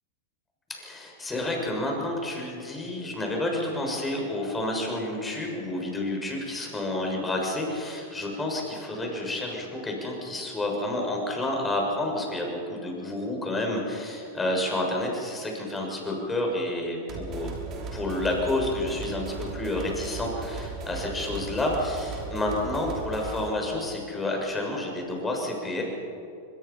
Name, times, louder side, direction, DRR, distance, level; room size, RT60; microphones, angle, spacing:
voice 1, 0.8-17.5 17.9-25.8, left 1 dB, 15° left, 0 dB, 6.9 m, -30 dB
sound 1, 17.1-23.6, right 4 dB, 40° right, 5.8 m, -37 dB
24.5 x 22.0 x 5.8 m, 2.6 s
hypercardioid pair, 100°, 0 cm